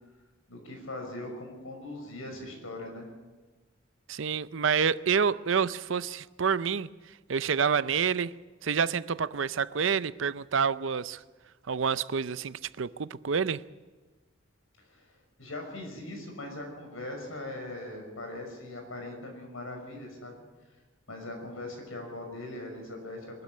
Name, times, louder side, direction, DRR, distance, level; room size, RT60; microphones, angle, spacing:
voice 1, 0.5-3.1 14.8-20.3 21.1-23.4, left 1 dB, 90° left, 6.1 m, -40 dB
voice 2, 4.1-6.9 7.3-8.3 8.6-11.2 11.7-13.6, right 6 dB, 65° right, 0.6 m, -28 dB
22.5 x 13.0 x 9.5 m
head